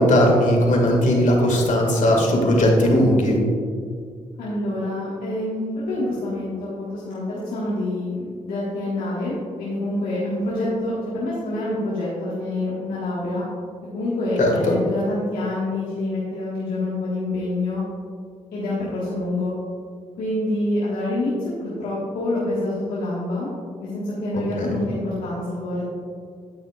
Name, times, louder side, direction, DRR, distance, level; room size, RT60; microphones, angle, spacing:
voice 1, 0.0-3.4 14.4-14.7 24.3-24.8, left 1 dB, 60° left, 0 dB, 2.0 m, -18 dB
voice 2, 4.4-13.4 13.9-17.8 18.5-19.5 20.2-21.3 21.6-23.5 23.8-25.8, left 1 dB, 90° left, -9 dB, 1.6 m, -26 dB
9.5 x 8.6 x 2.4 m, 2.1 s
supercardioid pair, 55°, 14 cm